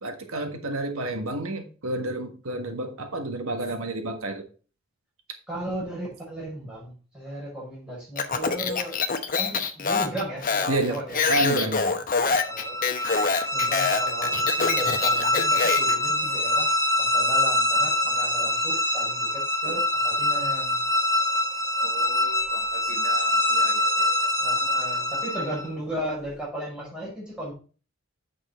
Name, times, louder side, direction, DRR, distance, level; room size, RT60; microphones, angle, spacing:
voice 1, 0.0-4.4 10.7-11.0 11.3-12.0 21.8-24.3, right 1 dB, 85° right, 1.5 m, -30 dB
voice 2, 5.5-9.0 9.4-11.2 11.6-12.0 12.5-12.8 13.5-16.7 17.0-20.8 24.4-27.5, right 1 dB, 5° right, 5.4 m, -35 dB
Speech, 8.2-16.0, left 5 dB, 40° left, 0.9 m, -25 dB
sound 1, 12.3-25.7, left 1 dB, 15° left, 1.2 m, -24 dB
8.4 x 6.2 x 4.3 m
head